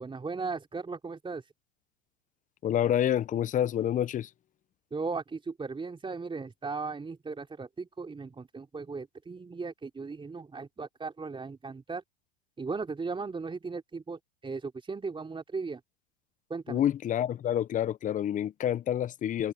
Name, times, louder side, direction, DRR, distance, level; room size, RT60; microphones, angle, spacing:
voice 1, 0.0-1.4 4.9-12.0 12.6-15.8 16.5-16.8, right 4 dB, 15° right, 3.2 m, -37 dB
voice 2, 2.6-4.3 16.7-19.5, left 10 dB, 20° left, 0.7 m, -28 dB
open air
hypercardioid pair, 110°, 38 cm